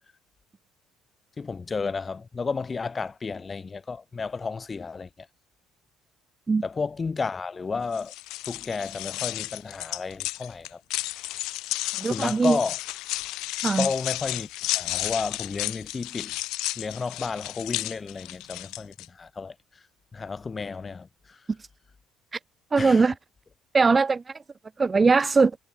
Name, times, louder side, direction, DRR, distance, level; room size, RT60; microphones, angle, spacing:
voice 1, 1.4-5.1 6.6-8.1 8.5-10.8 12.1-12.8 13.8-14.5 14.7-16.3 16.8-19.5 20.1-21.4 22.8-23.1, left 4 dB, 25° left, 2.5 m, -32 dB
sound 1, 7.9-19.1, left 18 dB, 80° left, 1.1 m, -33 dB
voice 2, 12.0-12.6 13.6-13.9 22.7-23.1 23.7-24.4 24.8-25.6, right 4 dB, 20° right, 0.9 m, -20 dB
cardioid pair, 120°, 0 cm